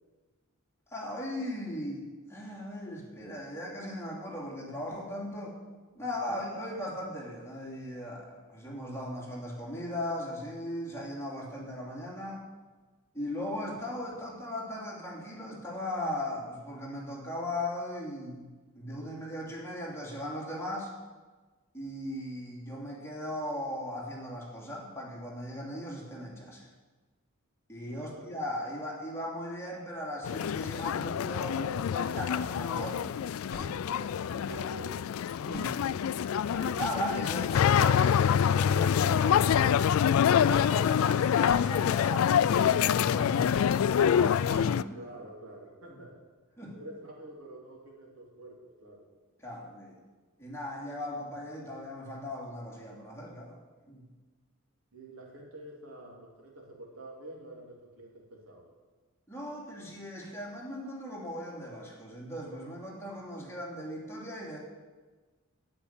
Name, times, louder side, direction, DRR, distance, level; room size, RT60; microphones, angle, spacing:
voice 1, 0.9-2.0 2.3-5.6 5.9-12.5 13.1-20.9 21.7-26.7 27.7-33.3 33.5-33.8 35.4-35.8 36.6-39.8 40.4-45.0 45.9-46.0 46.6-46.8 49.4-50.0 50.4-53.6 53.9-54.0 59.3-64.6, left 1 dB, 15° left, -4 dB, 2.9 m, -38 dB
voice 2, 6.3-6.7 27.9-28.4 33.7-35.1 36.2-37.2 44.8-46.2 46.7-49.1 54.9-58.7, right 2 dB, 80° right, -2 dB, 3.3 m, -48 dB
sound 1, 30.2-44.8, left 8 dB, 70° left, 0.3 m, -26 dB
sound 2, 33.5-33.6 34.4-34.6 35.5-35.7 36.5-36.6 37.5-37.7 38.4-38.6 39.5-39.7 40.5-40.7 41.4-41.6 42.5-42.7 43.5-43.7 44.5-44.7, left 3 dB, 50° left, 1.6 m, -41 dB
8.9 x 8.1 x 9.4 m, 1.3 s
head